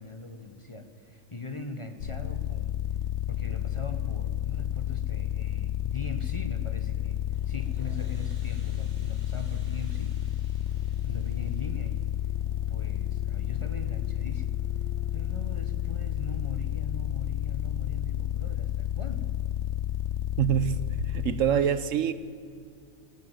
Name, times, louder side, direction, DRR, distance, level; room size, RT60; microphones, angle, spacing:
voice 1, 0.0-2.8 3.3-7.2 7.5-10.2 11.0-12.0 12.7-14.6 15.1-19.3 21.3-21.7, left 2 dB, 25° left, 1.2 m, -41 dB
sound 1, 2.0-21.3, left 13 dB, 60° left, 1.2 m, -31 dB
sound 2, 7.3-15.8, left 1 dB, 30° right, 4.1 m, -54 dB
voice 2, 20.4-22.1, right 9 dB, 70° right, 1.1 m, -26 dB
21.0 x 16.5 x 7.5 m
omnidirectional pair, 1.5 m